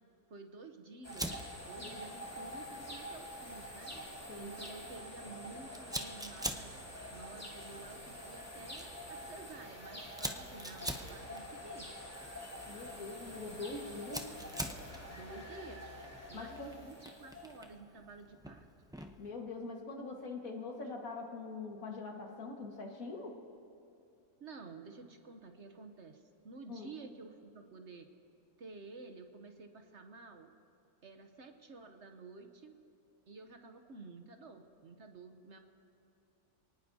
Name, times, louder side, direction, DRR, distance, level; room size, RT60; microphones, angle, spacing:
voice 1, 0.3-3.9 4.4-6.8 7.1-11.9 15.1-18.7 24.4-28.1 28.6-30.5 31.0-32.8 33.3-35.6, right 3 dB, 55° right, 6 dB, 1.1 m, -51 dB
sound 1, 1.0-17.8, equal, 10° left, 2.5 m, -47 dB
Fire, 1.1-19.3, equal, 5° right, 0.3 m, -47 dB
voice 2, 12.7-14.2 16.3-16.7 19.2-23.3 26.7-26.9, left 3 dB, 65° left, 1 dB, 2.1 m, -43 dB
28.0 x 19.0 x 2.8 m, 2.7 s
omnidirectional pair, 1.6 m